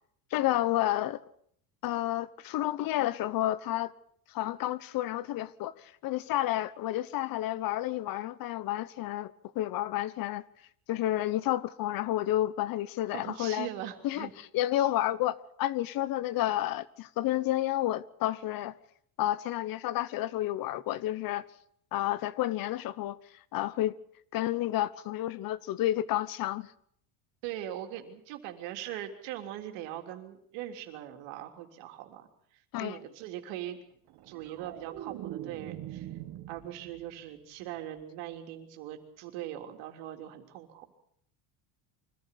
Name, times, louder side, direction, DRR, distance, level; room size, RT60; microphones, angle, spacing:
voice 1, 0.3-1.2 1.8-3.9 4.3-10.4 10.9-13.7 14.0-14.3 14.5-18.7 19.2-21.5 21.9-23.2 23.5-23.9 24.3-26.7 32.7-33.0, left 14 dB, 50° left, 1.1 m, -30 dB
voice 2, 13.1-14.3 14.8-14.9 27.4-32.3 32.8-33.8 34.3-36.1 36.5-40.9, right 12 dB, 80° right, 3.5 m, -41 dB
sound 1, 34.1-37.3 37.6-38.0, right 13 dB, 60° right, 2.0 m, -43 dB
24.5 x 14.5 x 8.4 m
cardioid pair, 135°, 43 cm